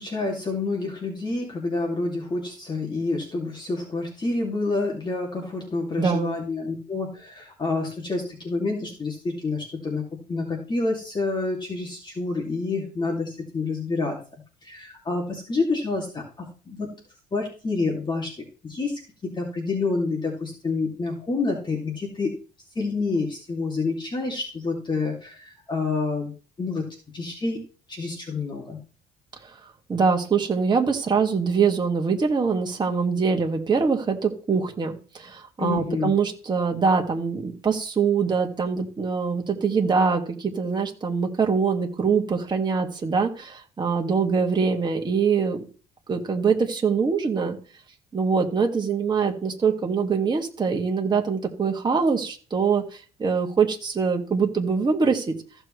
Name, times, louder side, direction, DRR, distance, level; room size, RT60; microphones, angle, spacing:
voice 1, 0.0-14.2 14.6-16.9 17.3-18.3 18.6-22.3 22.8-26.3 26.6-26.9 27.1-27.6 27.9-28.8 35.6-36.1, left 3 dB, 25° left, -1 dB, 2.5 m, -28 dB
voice 2, 6.0-6.4 29.4-29.5 29.9-45.6 46.1-47.6 48.1-55.3, right 5 dB, 25° right, 2 dB, 2.0 m, -23 dB
15.0 x 6.8 x 3.2 m, 0.37 s
cardioid pair, 110°, 17 cm